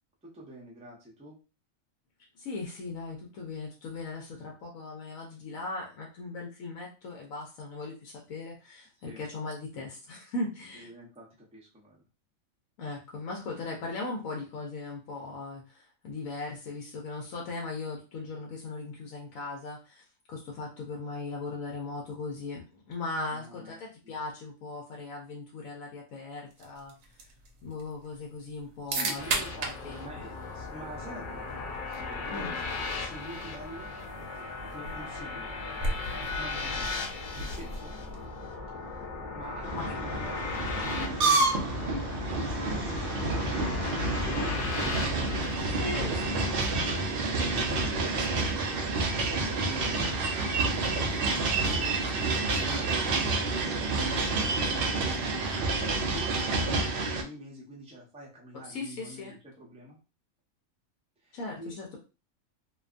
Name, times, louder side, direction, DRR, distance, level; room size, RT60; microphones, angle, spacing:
voice 1, 0.2-1.4 9.0-9.2 10.7-12.0 23.3-24.2 28.9-33.9 34.2-35.5 36.3-37.0 37.4-38.0 39.3-40.4 40.9-46.6 46.8-48.6 49.4-50.4 50.7-53.8 54.3-60.0 61.2-61.8, right 1 dB, 5° right, -3 dB, 0.5 m, -47 dB
voice 2, 2.4-10.9 12.8-20.0 20.3-22.6 22.9-26.9 27.6-30.0 32.3-32.5 37.0-37.1 39.7-39.8 41.6-41.7 45.8-46.5 58.6-59.3 61.3-62.0, left 3 dB, 80° left, -1 dB, 1.0 m, -38 dB
sound 1, 26.5-38.4, right 2 dB, 80° right, 1.0 m, -39 dB
sound 2, 29.1-46.7, left 3 dB, 65° left, 0.5 m, -37 dB
sound 3, 39.6-57.2, right 3 dB, 65° right, 0.6 m, -29 dB
2.6 x 2.2 x 2.4 m, 0.32 s
omnidirectional pair, 1.4 m